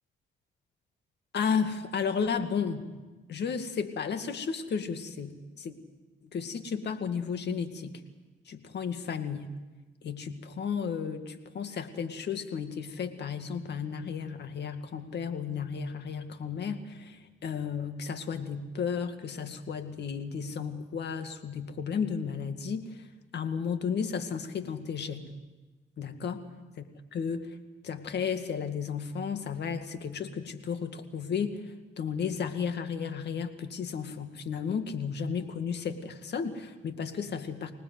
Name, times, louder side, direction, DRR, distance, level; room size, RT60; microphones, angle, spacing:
voice 1, 1.3-2.8 3.3-5.7 6.3-7.9 8.5-9.5 10.0-22.9 23.3-25.3 26.0-26.4 26.8-26.9 27.1-27.5 27.8-31.6 32.0-37.7, left 6 dB, 60° left, 8 dB, 2.2 m, -33 dB
25.5 x 19.0 x 7.9 m, 1.2 s
cardioid pair, 90°, 20 cm